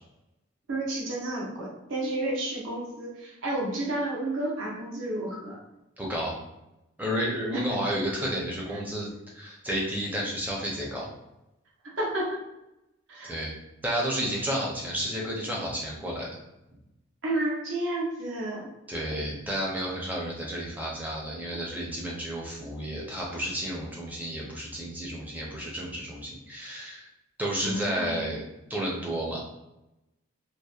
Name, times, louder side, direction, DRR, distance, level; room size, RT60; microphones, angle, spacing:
voice 1, 0.7-5.6 7.5-7.6 8.7-8.8 12.0-12.4 13.1-13.3 17.2-18.7 27.6-28.3, right 1 dB, 70° right, -3 dB, 0.6 m, -31 dB
voice 2, 6.0-6.3 7.0-11.1 13.2-13.6 13.8-16.3 18.9-27.0 27.4-28.4 28.7-29.4, equal, 10° right, -3 dB, 0.4 m, -31 dB
2.7 x 2.0 x 2.3 m, 0.91 s
head